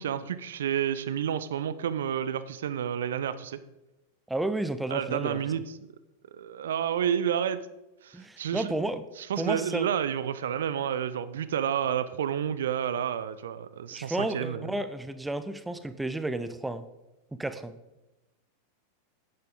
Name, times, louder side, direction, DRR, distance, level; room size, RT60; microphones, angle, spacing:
voice 1, 0.0-3.6 4.9-5.9 6.3-7.6 8.0-8.7 9.2-14.7, right 9 dB, 60° right, 14 dB, 0.5 m, -30 dB
voice 2, 4.3-5.4 8.1-9.0 9.4-9.9 13.9-16.8 17.4-17.7, right 2 dB, 5° right, 12 dB, 0.8 m, -32 dB
11.0 x 9.6 x 3.8 m, 0.98 s
figure-of-eight pair, 90°, 0 cm